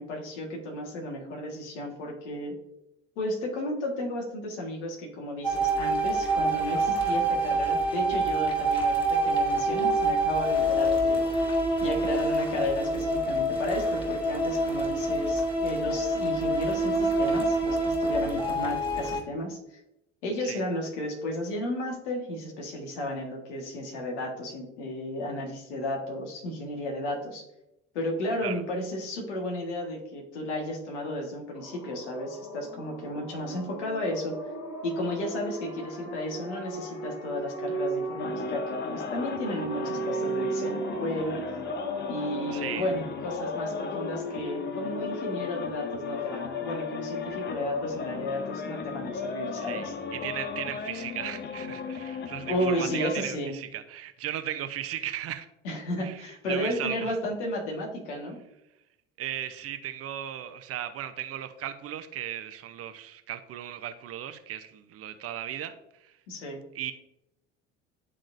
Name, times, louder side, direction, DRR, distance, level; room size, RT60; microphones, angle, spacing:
voice 1, 0.0-2.5 3.1-11.2 11.8-19.6 20.2-27.4 27.9-34.4 34.8-41.4 42.1-49.9 52.5-53.5 55.6-58.4 66.3-66.6, left 1 dB, 70° left, 0 dB, 1.7 m, -33 dB
sound 1, 5.4-19.2, right 1 dB, 15° left, 2.0 m, -26 dB
sound 2, 31.5-51.0, right 3 dB, 50° left, 1.9 m, -38 dB
sound 3, 38.2-53.2, left 5 dB, 30° left, 0.7 m, -35 dB
voice 2, 42.5-42.9 49.6-55.5 56.0-57.2 59.2-65.8 66.0-66.1 66.7-66.9, right 11 dB, 40° right, 10 dB, 0.7 m, -36 dB
11.0 x 3.7 x 2.6 m, 0.86 s
hypercardioid pair, 65°, 35 cm